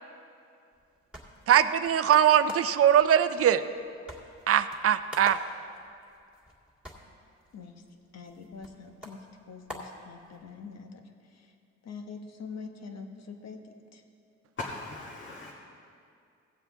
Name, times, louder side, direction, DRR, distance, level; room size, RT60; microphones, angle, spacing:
sound 1, 0.7-10.7, left 1 dB, 5° right, 2.2 m, -48 dB
voice 1, 1.5-3.6 4.5-5.4, right 9 dB, 50° right, 12 dB, 0.5 m, -21 dB
voice 2, 8.1-11.0 11.3-11.5 11.8-13.6 13.9-14.0, left 5 dB, 60° left, 4 dB, 1.2 m, -44 dB
voice 3, 14.6-15.5, left 2 dB, 40° left, -3 dB, 1.4 m, -38 dB
16.5 x 7.5 x 3.6 m, 2.4 s
cardioid pair, 90°, 30 cm